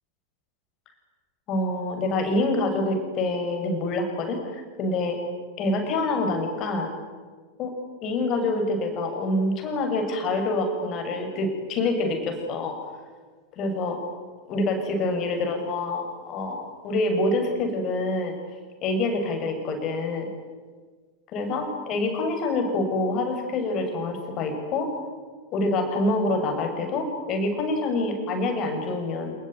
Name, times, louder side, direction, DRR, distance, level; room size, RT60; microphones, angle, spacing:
voice 1, 1.5-5.2 5.6-6.9 7.6-7.7 8.0-12.8 13.6-14.0 14.5-18.3 18.8-20.3 21.3-24.9 25.5-29.3, left 2 dB, 35° left, 4 dB, 7.0 m, -26 dB
29.0 x 20.5 x 9.5 m, 1.5 s
figure-of-eight pair, 90°, 0 cm